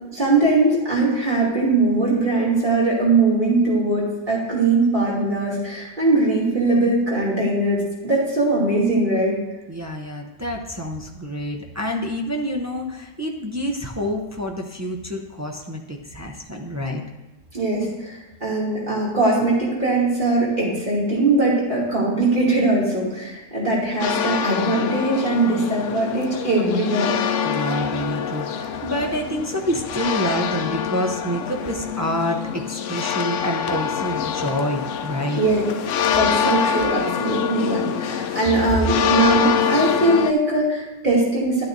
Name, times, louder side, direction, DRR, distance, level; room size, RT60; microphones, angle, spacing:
voice 1, 0.1-9.3 17.5-27.1 35.4-35.6 36.1-41.6, right 2 dB, 40° right, -6 dB, 2.8 m, -21 dB
voice 2, 9.7-17.0 27.4-35.4, equal, 25° right, 1 dB, 0.4 m, -27 dB
sound 1, 24.0-40.3, left 7 dB, 75° left, 0.9 m, -25 dB
11.5 x 8.8 x 2.6 m, 1.1 s
omnidirectional pair, 1.3 m